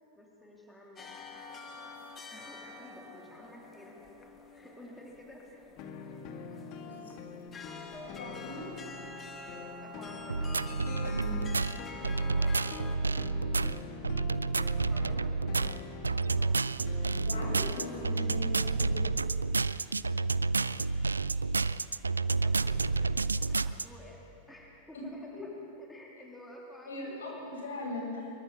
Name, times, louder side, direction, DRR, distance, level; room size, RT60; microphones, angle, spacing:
voice 1, 0.2-1.4 2.3-4.0 4.5-5.7 7.9-8.2 9.8-10.6 12.3-12.7 14.8-15.7 16.3-16.6 22.4-24.2 24.5-25.5 25.8-27.3, left 1 dB, 5° left, -2 dB, 3.4 m, -52 dB
sound 1, 1.0-13.0, left 4 dB, 20° left, 2.3 m, -48 dB
sound 2, 5.8-18.2, left 4 dB, 40° left, 2.1 m, -45 dB
voice 2, 8.2-8.7 10.8-11.4 14.9-15.2 17.2-18.9 24.9-25.0 26.9-28.3, left 1 dB, 65° left, -2 dB, 8.0 m, -40 dB
sound 3, 10.3-23.8, right 3 dB, 80° right, 0.5 m, -30 dB
24.0 x 22.5 x 6.9 m, 2.9 s
figure-of-eight pair, 90°, 0 cm